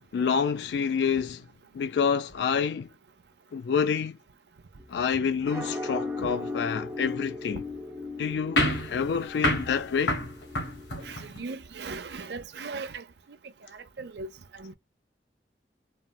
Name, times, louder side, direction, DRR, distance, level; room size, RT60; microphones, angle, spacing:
voice 1, 0.1-1.4 1.7-2.9 3.5-4.2 4.9-7.6 8.2-10.2, left 6 dB, 70° left, 0.3 m, -28 dB
sound 1, 4.8-11.1, left 3 dB, 15° right, 0.9 m, -37 dB
sound 2, 8.6-11.4, left 1 dB, 85° left, 1.6 m, -29 dB
voice 2, 11.0-13.0 13.7-14.7, right 4 dB, 65° right, 0.6 m, -38 dB
4.2 x 2.0 x 2.2 m
head